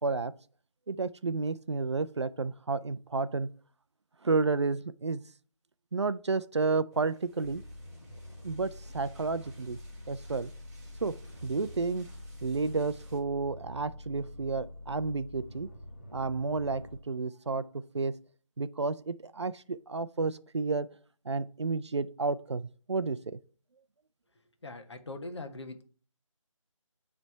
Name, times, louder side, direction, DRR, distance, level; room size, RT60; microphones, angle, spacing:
voice 1, 0.0-0.3 0.9-3.5 4.2-5.2 5.9-7.6 8.4-9.8 10.1-10.5 11.0-12.1 12.4-15.7 16.1-18.1 18.6-20.9 21.3-22.6 22.9-23.4, right 4 dB, 55° right, 0.4 m, -31 dB
sound 1, 6.9-13.2, right 1 dB, 30° right, 2.3 m, -57 dB
sound 2, 7.4-17.0, left 1 dB, 20° left, 0.8 m, -47 dB
voice 2, 24.6-25.8, left 2 dB, 55° left, 1.1 m, -41 dB
9.2 x 3.4 x 4.5 m
figure-of-eight pair, 160°, 17 cm